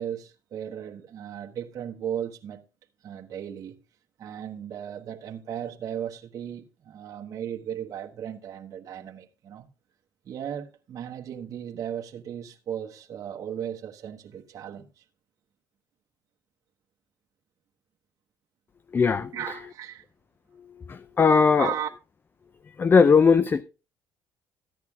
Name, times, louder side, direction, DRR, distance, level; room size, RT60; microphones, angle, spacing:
voice 1, 0.0-2.6 3.0-3.8 4.2-9.7 10.2-15.0 19.3-20.0 21.6-21.9, right 9 dB, 55° right, 1.2 m, -36 dB
voice 2, 18.9-19.3 20.9-21.7 22.7-23.6, left 5 dB, 30° left, 0.5 m, -19 dB
14.5 x 10.5 x 2.4 m
cardioid pair, 95°, 7 cm